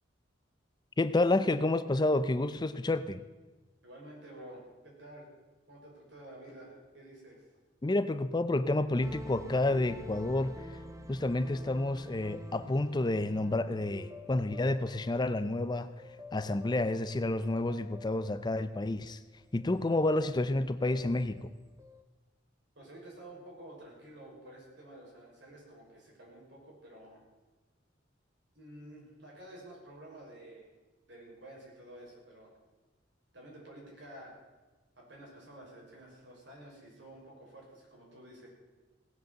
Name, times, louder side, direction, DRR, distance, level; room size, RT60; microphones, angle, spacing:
voice 1, 1.0-3.2 7.8-10.8 11.1-15.9 16.3-19.2 19.5-21.5, left 2 dB, 20° left, 13 dB, 0.5 m, -30 dB
voice 2, 3.8-5.3 5.7-7.5 22.8-27.2 28.5-30.7 31.1-32.5 33.3-34.3 35.0-38.5, right 1 dB, 70° right, -2 dB, 5.9 m, -51 dB
sound 1, 9.0-22.0, left 1 dB, 15° right, 1.1 m, -50 dB
18.0 x 7.8 x 7.9 m, 1.2 s
head